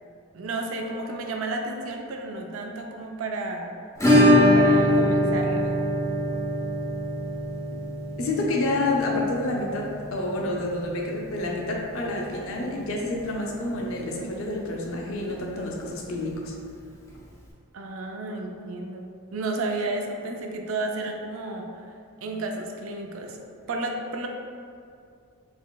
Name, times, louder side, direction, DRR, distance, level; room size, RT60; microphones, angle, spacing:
voice 1, 0.3-3.7 4.5-5.8 17.7-21.8 22.2-23.4 23.7-24.3, right 2 dB, 65° right, 2 dB, 0.4 m, -32 dB
Acoustic guitar / Strum, 4.0-12.6 12.9-13.0 13.2-13.3 13.7-13.8 15.9-16.0 17.1-17.2, left 1 dB, 15° left, 0.6 m, -23 dB
voice 2, 8.2-16.5, left 2 dB, 65° left, -1 dB, 0.5 m, -28 dB
4.2 x 2.9 x 2.3 m, 2.3 s
head